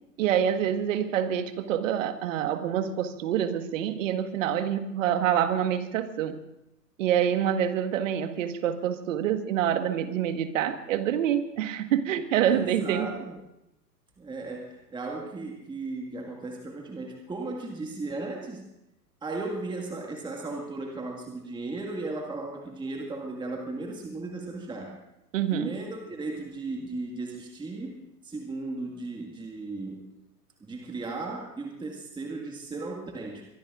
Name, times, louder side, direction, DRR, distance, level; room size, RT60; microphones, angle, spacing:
voice 1, 0.2-6.3 7.0-13.1 25.3-25.7, right 9 dB, 50° right, 8 dB, 1.7 m, -26 dB
voice 2, 12.5-13.4 14.2-18.7 19.2-25.0 25.5-30.1 30.6-33.5, right 3 dB, 10° right, 1 dB, 1.9 m, -36 dB
23.5 x 23.0 x 2.6 m, 0.89 s
figure-of-eight pair, 105°, 49 cm